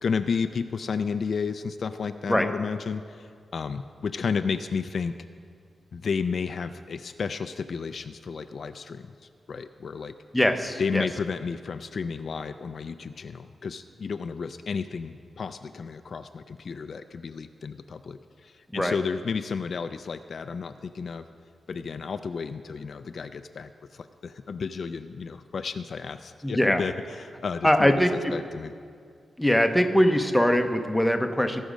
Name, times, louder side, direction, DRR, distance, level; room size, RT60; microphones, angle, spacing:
voice 1, 0.0-5.1 5.9-10.1 10.8-21.3 21.7-28.7, left 5 dB, 55° left, 10 dB, 0.3 m, -32 dB
voice 2, 10.3-11.0 18.7-19.0 26.4-26.8 27.6-28.3 29.4-31.6, equal, 5° left, 6 dB, 0.7 m, -22 dB
18.0 x 6.4 x 5.1 m, 2.2 s
wide cardioid pair, 135°, 0 cm